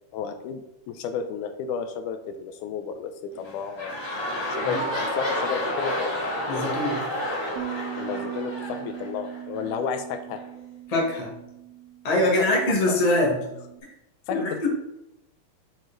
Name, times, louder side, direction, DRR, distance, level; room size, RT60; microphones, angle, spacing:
voice 1, 0.1-0.6 0.9-3.9 4.5-6.1 6.5-6.9 8.0-10.4 12.4-12.5 12.9-13.0 14.3-14.7, left 7 dB, 90° left, 8 dB, 2.1 m, -32 dB
sound 1, 3.3-9.7 10.4-10.5, left 1 dB, 30° left, 1.9 m, -30 dB
voice 2, 6.5-7.0 10.9-11.3 12.0-13.4 14.3-14.7, left 1 dB, 70° left, -2 dB, 0.3 m, -23 dB
sound 2, 7.6-13.8, right 14 dB, 85° right, 1.4 m, -39 dB
6.6 x 4.1 x 3.8 m, 0.88 s
omnidirectional pair, 3.5 m